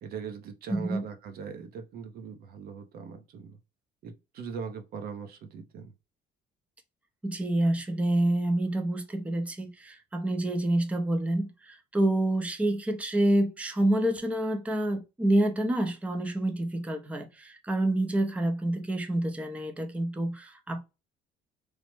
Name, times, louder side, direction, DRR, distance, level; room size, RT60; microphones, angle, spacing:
voice 1, 0.0-3.6 4.0-5.9, right 6 dB, 65° right, 0.6 m, -40 dB
voice 2, 0.7-1.0 7.2-20.8, right 1 dB, 10° right, 0.5 m, -28 dB
3.1 x 2.0 x 3.1 m
cardioid pair, 110°, 17 cm